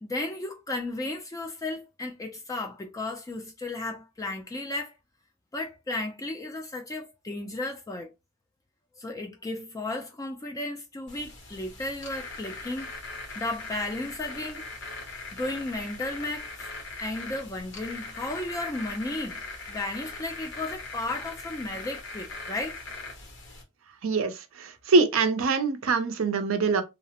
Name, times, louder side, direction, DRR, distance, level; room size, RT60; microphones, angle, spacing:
voice 1, 0.0-4.9 5.5-8.1 9.0-12.9 13.4-14.6 15.3-16.7 17.0-19.4 19.7-22.8, left 2 dB, 15° left, 0.3 m, -34 dB
sound 1, 11.1-23.6, left 3 dB, 60° left, 0.9 m, -40 dB
voice 2, 24.0-24.3 24.6-26.8, right 4 dB, 65° right, 0.5 m, -23 dB
2.8 x 2.0 x 2.7 m
head